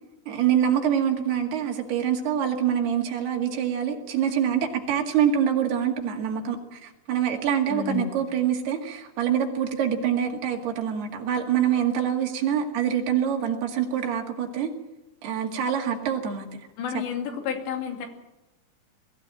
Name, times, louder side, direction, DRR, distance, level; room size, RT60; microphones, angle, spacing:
voice 1, 0.3-14.7 15.2-16.5, right 9 dB, 70° right, 2 dB, 4.0 m, -25 dB
voice 2, 7.7-8.2 16.8-18.1, left 7 dB, 85° left, 3 dB, 4.8 m, -31 dB
21.5 x 14.5 x 9.0 m, 0.99 s
omnidirectional pair, 4.9 m